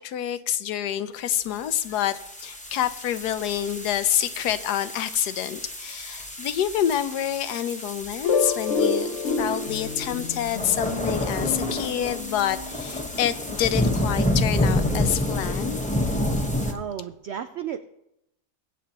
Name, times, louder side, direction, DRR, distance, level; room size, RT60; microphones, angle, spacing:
voice 1, 0.0-15.8, left 11 dB, 85° left, 12 dB, 1.2 m, -27 dB
sound 1, 1.6-16.7, left 1 dB, 5° left, 0.7 m, -29 dB
sound 2, 8.2-12.8, left 5 dB, 55° left, 0.9 m, -28 dB
voice 2, 16.7-17.8, right 9 dB, 80° right, 9 dB, 0.5 m, -33 dB
22.5 x 8.4 x 2.9 m, 0.83 s
omnidirectional pair, 1.7 m